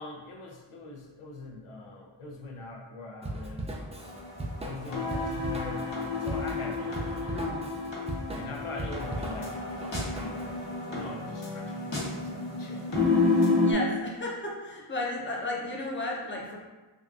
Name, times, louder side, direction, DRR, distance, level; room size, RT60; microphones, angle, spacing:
voice 1, 0.0-4.2 4.6-7.5 8.3-9.5 9.9-12.8, left 2 dB, 90° left, -1 dB, 0.6 m, -42 dB
Drum kit / Drum, 3.2-10.5, right 1 dB, 15° right, 0.3 m, -38 dB
sound 1, 4.0-13.7, left 3 dB, 60° left, 0.9 m, -30 dB
voice 2, 7.3-7.7 13.6-16.6, left 2 dB, 25° left, -2 dB, 0.6 m, -34 dB
3.5 x 2.3 x 2.5 m, 1.2 s
wide cardioid pair, 45°, 49 cm